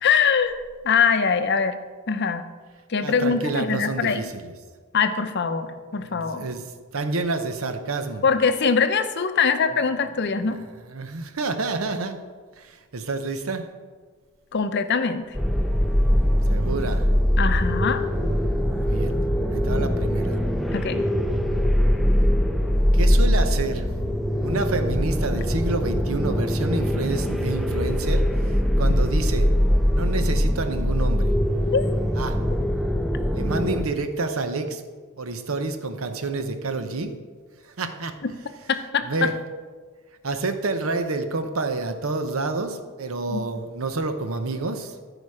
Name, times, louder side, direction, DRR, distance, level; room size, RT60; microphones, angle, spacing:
voice 1, 0.0-1.8 2.1-2.5 2.9-4.3 4.9-6.5 8.2-10.6 14.5-15.2 17.4-18.0 20.7-21.0 31.7-31.8 38.2-38.3 38.7-39.0 43.3-43.4, left 5 dB, 50° left, 9 dB, 0.6 m, -22 dB
voice 2, 3.0-4.5 6.0-6.6 6.9-8.2 10.4-10.6 10.9-12.2 12.6-13.7 16.2-17.1 18.8-19.2 19.5-20.4 22.9-23.8 24.4-29.5 29.9-31.3 32.2-32.4 33.3-34.8 35.2-37.1 37.6-38.2 39.0-39.4 40.2-45.0, right 3 dB, 80° right, 8 dB, 0.8 m, -28 dB
sound 1, 15.3-33.8, equal, ahead, 0.5 m, -22 dB
14.0 x 5.0 x 4.9 m, 1.5 s
head